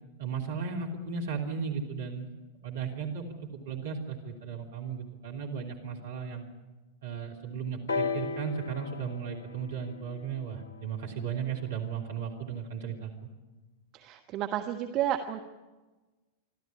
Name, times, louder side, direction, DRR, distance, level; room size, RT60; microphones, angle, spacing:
voice 1, 0.2-2.3 2.6-6.4 7.0-13.3, right 6 dB, 60° right, 0 dB, 3.1 m, -35 dB
sound 1, 7.9-11.7 12.6-12.7, left 4 dB, 60° left, 1.2 m, -36 dB
voice 2, 13.9-15.5, right 11 dB, 35° right, 4 dB, 1.3 m, -31 dB
27.0 x 13.0 x 9.9 m, 1.2 s
figure-of-eight pair, 90°, 0 cm